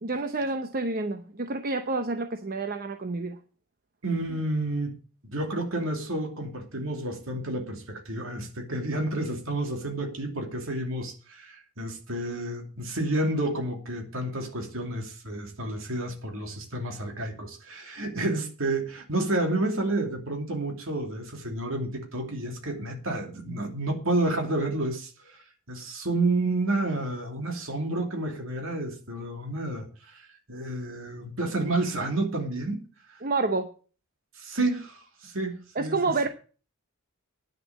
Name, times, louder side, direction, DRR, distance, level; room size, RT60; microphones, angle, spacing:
voice 1, 0.0-3.4 18.1-18.2 33.2-33.7 35.8-36.3, right 3 dB, 40° right, 0.8 m, -29 dB
voice 2, 4.0-5.0 5.2-30.2 30.5-32.8 34.4-36.0, right 2 dB, 60° right, 2.8 m, -30 dB
10.0 x 7.1 x 8.4 m
head